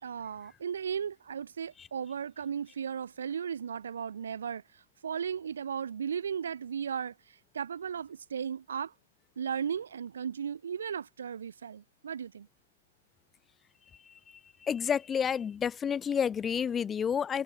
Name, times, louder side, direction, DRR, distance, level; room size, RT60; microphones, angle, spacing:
voice 1, 0.0-8.9 9.4-12.5, right 7 dB, 80° right, 2.6 m, -36 dB
voice 2, 14.6-17.4, left 7 dB, 15° left, 1.8 m, -29 dB
hypercardioid pair, 155°, 0 cm